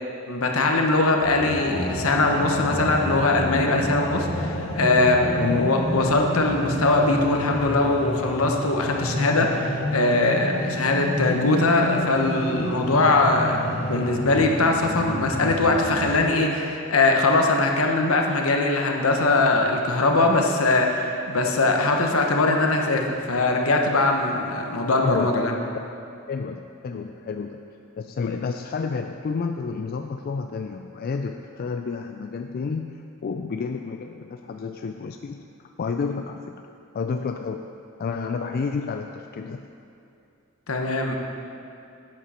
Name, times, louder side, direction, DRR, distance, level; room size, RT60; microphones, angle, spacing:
voice 1, 0.3-25.5 40.7-41.2, left 2 dB, 75° left, 2 dB, 1.1 m, -21 dB
sound 1, 1.2-16.2, left 1 dB, 30° left, 1.2 m, -30 dB
voice 2, 5.4-5.8 24.9-25.3 26.3-27.6 28.0-35.5 35.8-36.6 36.9-37.7 38.0-39.7, left 5 dB, 45° left, 5 dB, 0.3 m, -30 dB
11.0 x 8.4 x 4.3 m, 2.6 s
head